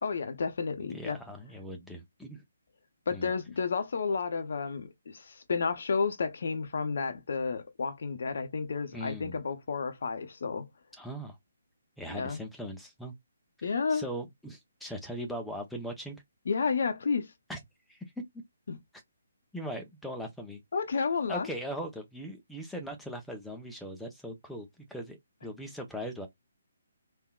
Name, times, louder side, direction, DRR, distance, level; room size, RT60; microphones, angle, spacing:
voice 1, 0.0-1.2 3.1-10.7 12.1-12.4 13.6-14.1 16.5-17.3 18.7-18.8 20.7-21.5, left 5 dB, 50° left, 0.8 m, -31 dB
voice 2, 0.9-2.4 3.1-3.3 8.9-9.4 11.0-11.3 12.0-13.1 13.6-16.2 17.5-17.6 17.9-18.2 19.5-20.6 21.3-26.3, equal, ahead, 0.7 m, -40 dB
3.7 x 2.6 x 2.3 m
figure-of-eight pair, 140°, 0 cm